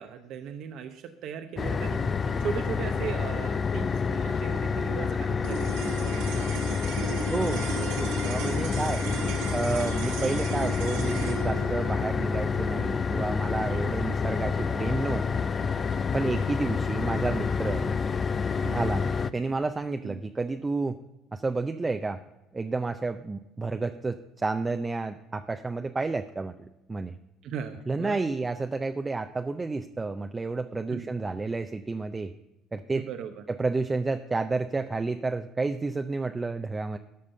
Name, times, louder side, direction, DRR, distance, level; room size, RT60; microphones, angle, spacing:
voice 1, 0.0-2.0 2.4-6.7 10.2-10.4 13.7-13.9 16.3-16.4 18.6-18.8 20.0-20.2 27.4-28.2 30.9-31.1 32.9-33.4, right 8 dB, 65° right, 7 dB, 0.8 m, -38 dB
sound 1, 1.6-19.3, left 5 dB, 35° left, 0.5 m, -28 dB
sound 2, 5.4-15.9, right 6 dB, 80° right, 1.6 m, -37 dB
voice 2, 7.3-9.2 9.5-15.2 16.1-17.9 18.7-21.0 21.3-22.2 22.5-26.5 26.9-27.1 27.9-32.3 32.7-33.0 33.5-37.0, right 3 dB, 20° right, 7 dB, 0.5 m, -30 dB
13.0 x 5.4 x 6.6 m, 0.99 s
supercardioid pair, 80°, 0 cm